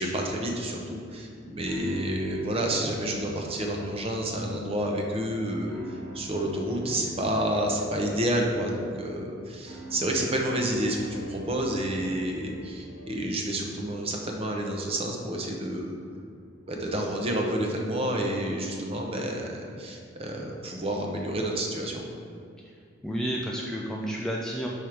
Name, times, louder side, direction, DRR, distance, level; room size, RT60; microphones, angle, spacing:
voice 1, 0.0-16.0 16.7-22.1, right 1 dB, 30° right, 1 dB, 0.7 m, -29 dB
sound 1, 0.8-17.0, equal, 75° right, 1.6 m, -46 dB
voice 2, 23.0-24.7, equal, 5° left, -3 dB, 0.3 m, -31 dB
5.4 x 4.9 x 4.4 m, 2.3 s
head